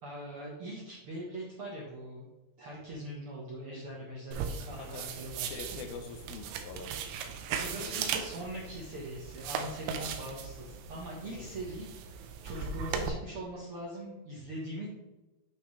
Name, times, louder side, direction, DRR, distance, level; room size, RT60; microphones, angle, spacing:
voice 1, 0.0-2.3 2.6-5.5 5.8-5.9 7.6-14.9, right 1 dB, 65° right, -5 dB, 1.4 m, -42 dB
sound 1, 4.3-13.1, right 7 dB, 85° right, 2.7 m, -38 dB
voice 2, 5.4-6.9 7.8-8.1 11.2-11.6, left 5 dB, 75° left, 5 dB, 2.5 m, -44 dB
8.3 x 6.1 x 3.2 m, 1.1 s
omnidirectional pair, 4.4 m